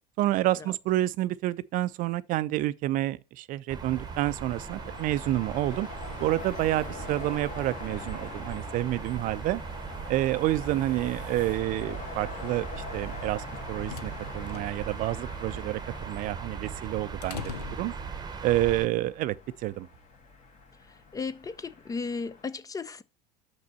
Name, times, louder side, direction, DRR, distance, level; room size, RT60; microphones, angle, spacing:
voice 1, 0.2-5.9 6.2-9.6 10.1-17.9 18.4-19.3 19.6-19.9, right 15 dB, 45° right, 0.4 m, -29 dB
sound 1, 3.7-18.9, right 6 dB, 20° right, 0.9 m, -39 dB
sound 2, 3.9-22.4, left 4 dB, 40° left, 1.8 m, -44 dB
sound 3, 13.6-18.6, left 8 dB, 80° left, 0.5 m, -44 dB
voice 2, 21.1-23.0, left 4 dB, 15° left, 0.4 m, -35 dB
6.0 x 5.8 x 4.3 m
figure-of-eight pair, 70°, 20 cm